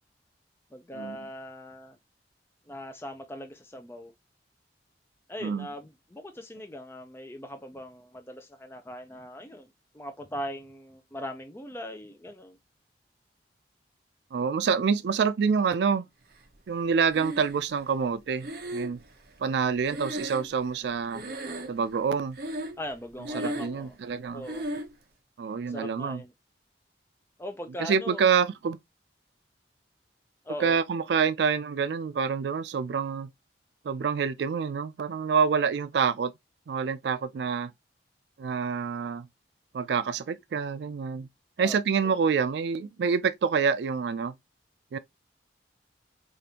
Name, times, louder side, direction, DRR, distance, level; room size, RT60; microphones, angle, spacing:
voice 1, 0.7-2.0 2.7-4.1 5.3-12.6 22.8-24.0 24.3-24.7 25.7-26.3 27.4-28.3 30.4-30.8 41.6-42.2, left 1 dB, 15° left, 0.5 m, -40 dB
voice 2, 14.3-16.1 16.7-19.0 19.4-21.2 21.7-22.4 23.3-24.4 25.4-26.2 27.8-28.8 30.6-33.3 33.8-36.3 36.7-37.7 38.4-39.3 39.7-41.3 41.6-44.3 44.9-45.0, right 6 dB, 75° right, 0.4 m, -27 dB
Breathing, 17.1-17.8 18.4-20.9 21.1-21.9 22.3-22.9 23.2-23.9 24.4-24.9, right 1 dB, 60° right, 0.8 m, -36 dB
5.0 x 2.5 x 2.8 m
head